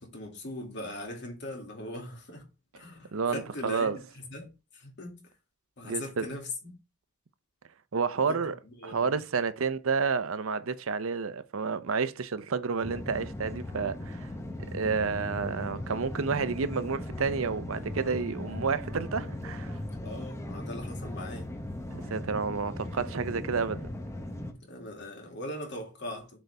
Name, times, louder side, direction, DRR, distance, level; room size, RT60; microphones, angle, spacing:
voice 1, 0.0-2.5 2.7-5.3 5.8-6.7 8.2-9.1 20.0-21.5 24.6-26.4, left 1 dB, 55° left, 2.5 m, -40 dB
voice 2, 3.1-4.0 5.8-6.2 7.9-8.5 8.8-14.3 14.7-19.8 21.9-23.9, right 5 dB, 75° right, 0.7 m, -30 dB
sound 1, 12.8-24.5, left 1 dB, 15° left, 0.9 m, -38 dB
7.8 x 4.1 x 3.4 m
head